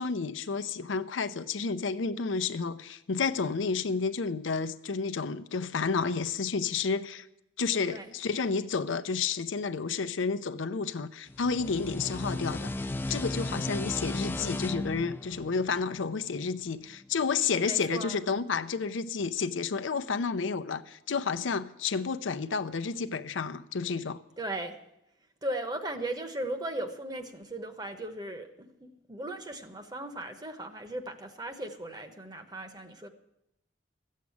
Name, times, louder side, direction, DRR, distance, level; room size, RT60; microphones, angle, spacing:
voice 1, 0.0-7.3 7.6-24.2, left 5 dB, 85° left, 0.6 m, -31 dB
sound 1, 11.3-16.6, left 2 dB, 10° left, 0.4 m, -35 dB
voice 2, 17.6-18.2 24.4-24.8 25.4-33.1, right 1 dB, 20° right, 0.9 m, -37 dB
14.5 x 7.5 x 8.6 m
head